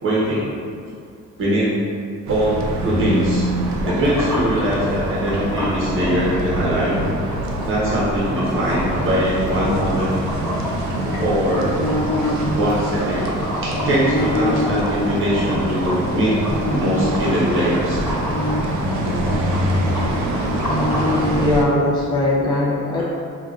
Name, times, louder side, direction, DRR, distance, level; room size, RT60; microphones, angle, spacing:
voice 1, 0.0-0.5 1.4-1.7 2.3-2.6 2.8-3.5 3.8-7.1 7.6-10.1 11.2-11.8 12.6-13.3 13.6-16.4 16.7-18.0, equal, 45° right, -7 dB, 0.9 m, -21 dB
sound 1, 2.3-21.6, right 1 dB, 65° right, 0.5 m, -25 dB
sound 2, 3.8-21.2, equal, 5° right, 1.1 m, -30 dB
sound 3, 11.0-15.8 16.5-21.4, left 1 dB, 70° left, 0.5 m, -26 dB
voice 2, 21.2-23.0, left 1 dB, 15° left, -5 dB, 0.5 m, -20 dB
3.8 x 2.4 x 2.4 m, 2.3 s
cardioid pair, 90°, 30 cm